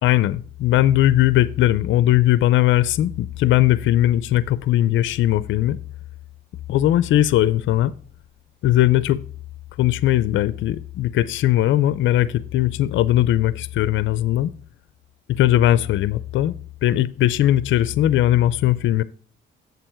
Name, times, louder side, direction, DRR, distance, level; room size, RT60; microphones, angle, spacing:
voice 1, 0.0-5.8 6.7-7.9 8.6-9.2 9.8-14.5 15.4-16.6 16.8-19.0, left 13 dB, 70° left, 0.5 m, -19 dB
8.1 x 6.9 x 4.3 m
cardioid pair, 90°, 20 cm